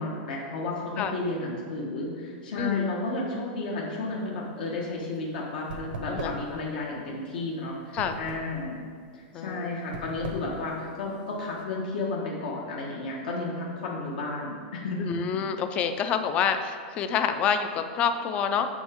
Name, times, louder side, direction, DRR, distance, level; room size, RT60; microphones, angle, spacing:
voice 1, 0.0-8.8 9.1-15.1, left 2 dB, 75° left, -3 dB, 1.3 m, -32 dB
voice 2, 2.6-2.9 6.1-6.4 7.9-8.2 9.3-9.7 15.0-18.7, left 7 dB, 25° left, 9 dB, 0.4 m, -27 dB
sound 1, 4.1-11.6, right 3 dB, 90° right, 1.1 m, -41 dB
6.5 x 5.3 x 5.1 m, 2.1 s
supercardioid pair, 165°, 5 cm